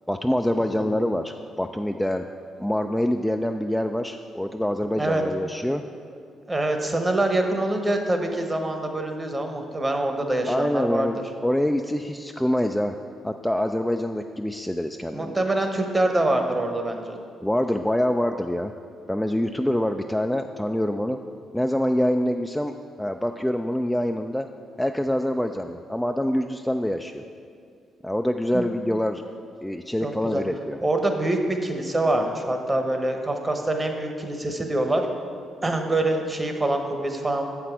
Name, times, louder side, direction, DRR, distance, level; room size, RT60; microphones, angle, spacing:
voice 1, 0.1-2.3 2.6-5.8 10.5-12.9 13.2-15.4 17.4-18.7 19.1-21.2 21.5-24.5 24.8-27.2 28.0-29.2 29.6-30.8, left 1 dB, 5° left, 5 dB, 0.3 m, -25 dB
voice 2, 0.6-0.9 5.0-5.2 6.5-11.1 15.1-17.2 28.5-28.6 30.0-30.4 30.8-35.0 35.6-37.4, right 1 dB, 25° right, 4 dB, 1.0 m, -25 dB
7.5 x 5.9 x 4.5 m, 2.3 s
supercardioid pair, 60°, 0 cm